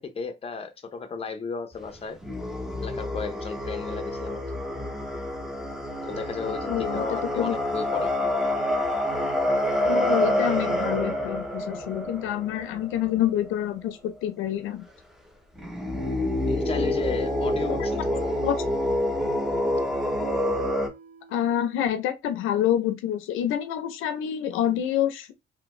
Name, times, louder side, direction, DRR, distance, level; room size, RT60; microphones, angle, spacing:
voice 1, 0.0-2.2 2.8-4.4 6.0-8.3 16.5-18.4, left 5 dB, 30° left, 0.6 m, -34 dB
sound 1, 1.7-13.7 15.6-20.9, left 1 dB, ahead, 0.8 m, -27 dB
voice 2, 6.7-7.6 9.8-14.8 17.7-17.8 18.4-18.6 21.3-25.3, left 10 dB, 90° left, 0.5 m, -27 dB
sound 2, 17.2-21.9, right 3 dB, 50° right, 1.0 m, -44 dB
3.3 x 2.1 x 3.1 m
cardioid pair, 90°, 20 cm